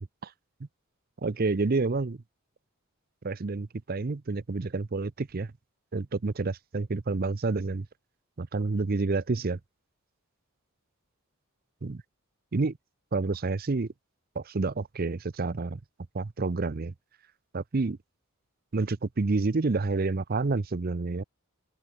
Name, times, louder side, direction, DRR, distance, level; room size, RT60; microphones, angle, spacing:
voice 1, 1.2-2.2 3.2-5.5 5.9-7.9 8.4-9.6 11.8-12.0 12.5-12.8 13.1-13.9 14.4-15.8 16.1-16.9 17.5-18.0 18.7-21.2, right 3 dB, 45° right, 0.6 m, -29 dB
open air
head